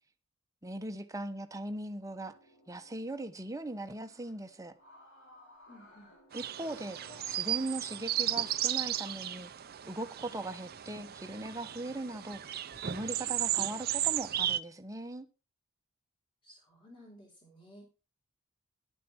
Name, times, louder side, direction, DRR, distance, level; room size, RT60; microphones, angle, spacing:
voice 1, 0.6-2.3 2.7-4.7 6.3-9.5 9.8-12.5 12.8-15.3, right 1 dB, 15° right, 1.0 m, -39 dB
sound 1, 2.1-9.1, equal, 65° left, 6.1 m, -58 dB
voice 2, 5.7-6.1 16.4-17.8, equal, 25° left, 5.1 m, -55 dB
sound 2, 6.3-14.6, right 12 dB, 45° right, 0.6 m, -35 dB
12.0 x 9.3 x 4.4 m
head